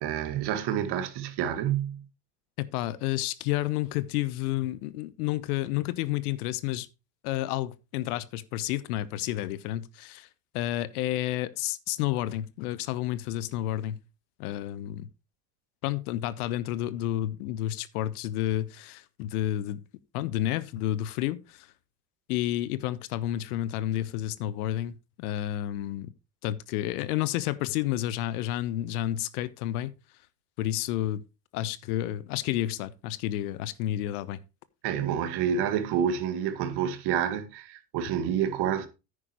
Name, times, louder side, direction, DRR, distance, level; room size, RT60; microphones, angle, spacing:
voice 1, 0.0-2.0 34.8-38.9, right 9 dB, 60° right, 1.9 m, -28 dB
voice 2, 2.6-6.9 7.2-10.3 10.5-14.0 14.4-15.1 15.8-19.8 20.1-21.7 22.3-24.9 25.2-26.1 26.4-29.9 30.6-31.2 31.5-34.4, left 13 dB, 75° left, 1.0 m, -30 dB
9.8 x 9.8 x 3.0 m
hypercardioid pair, 75°, 45 cm